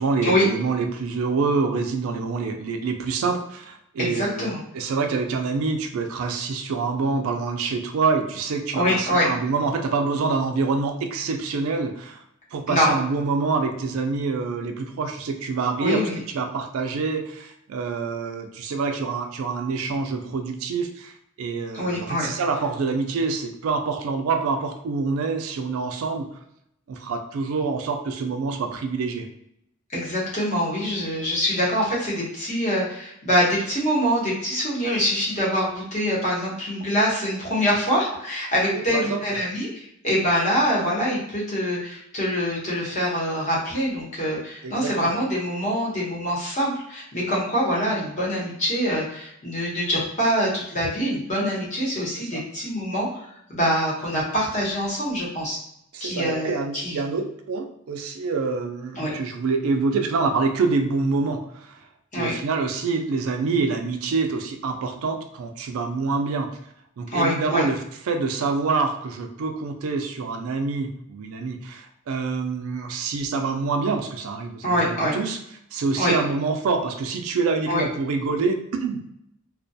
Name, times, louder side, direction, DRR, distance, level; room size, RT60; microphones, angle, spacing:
voice 1, 0.0-12.2 12.5-16.0 16.3-26.3 26.9-29.3 38.7-39.4 44.6-45.2 52.2-52.4 55.9-61.9 62.2-66.5 67.0-67.8 68.1-75.4 75.7-79.0, right 4 dB, 80° right, 6 dB, 0.4 m, -26 dB
voice 2, 4.0-4.6 8.7-9.3 12.7-12.9 15.8-16.2 21.7-22.3 29.9-55.6 56.0-57.0 59.0-59.1 62.1-62.3 67.1-67.6 74.6-75.1 76.0-76.1 77.7-77.8, equal, 35° left, -5 dB, 0.9 m, -24 dB
2.3 x 2.2 x 2.6 m, 0.76 s
head